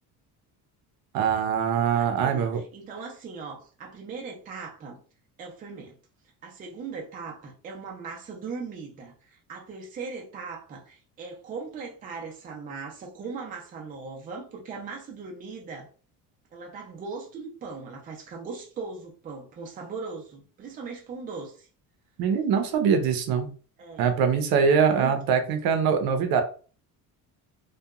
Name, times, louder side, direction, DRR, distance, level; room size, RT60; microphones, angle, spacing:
voice 1, 1.1-2.6 22.2-23.5 24.0-26.4, right 6 dB, 70° right, 7 dB, 0.6 m, -23 dB
voice 2, 1.9-5.0 5.4-6.0 6.4-15.9 16.5-21.7 23.8-24.1 24.9-25.2, right 4 dB, 25° right, 0 dB, 0.4 m, -39 dB
2.8 x 2.2 x 2.3 m, 0.38 s
cardioid pair, 180°, 37 cm